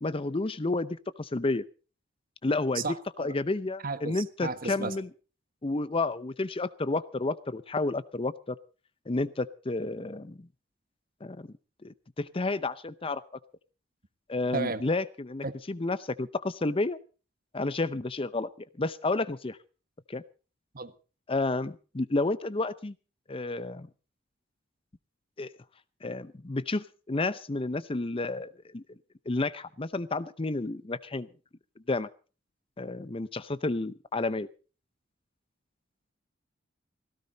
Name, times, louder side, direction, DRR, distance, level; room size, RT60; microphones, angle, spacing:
voice 1, 0.0-1.6 2.4-2.8 3.2-5.1 5.6-8.5 9.1-10.5 11.2-11.5 11.8-13.2 14.3-17.0 17.5-19.6 20.1-20.2 21.3-22.9 23.3-23.9 25.4-25.5 26.0-28.8 29.3-31.3 31.9-32.1 32.8-34.5, left 2 dB, 30° left, 0.6 m, -31 dB
voice 2, 2.7-3.3 3.8-4.9 14.5-14.8 15.4-15.5 20.7-20.9, right 4 dB, 50° right, 1.3 m, -33 dB
17.5 x 16.0 x 4.0 m
head